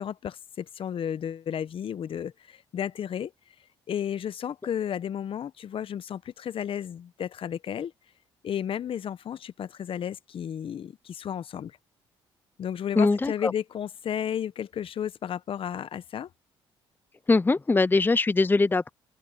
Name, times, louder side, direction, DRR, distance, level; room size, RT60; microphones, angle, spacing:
voice 1, 0.0-3.3 3.9-7.9 8.4-11.8 12.6-16.3, left 9 dB, 55° left, 0.9 m, -33 dB
voice 2, 13.0-13.5 17.3-18.9, left 3 dB, 20° left, 0.6 m, -22 dB
open air
supercardioid pair, 60°, 11 cm